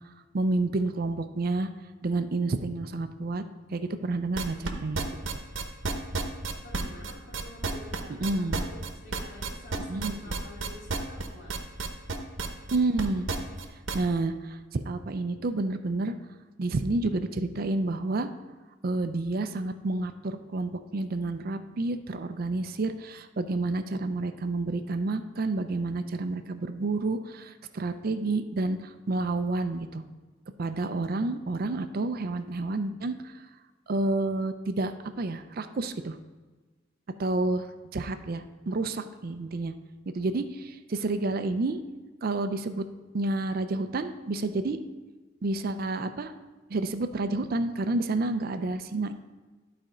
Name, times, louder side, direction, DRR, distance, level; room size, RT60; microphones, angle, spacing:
voice 1, 0.3-1.7 2.0-3.4 3.7-5.0 8.2-8.6 9.8-10.2 12.7-13.3 13.9-16.1 16.6-18.3 18.8-30.0 30.6-33.3 33.9-36.2 37.2-39.7 40.1-41.8 42.2-42.9 43.1-44.8 45.4-46.3 46.7-49.1, right 2 dB, 50° right, 10 dB, 0.5 m, -29 dB
sound 1, 4.3-14.1, right 3 dB, 80° right, 0.9 m, -31 dB
voice 2, 6.6-11.5, left 1 dB, 70° left, -4 dB, 2.5 m, -48 dB
11.5 x 4.3 x 5.0 m, 1.3 s
head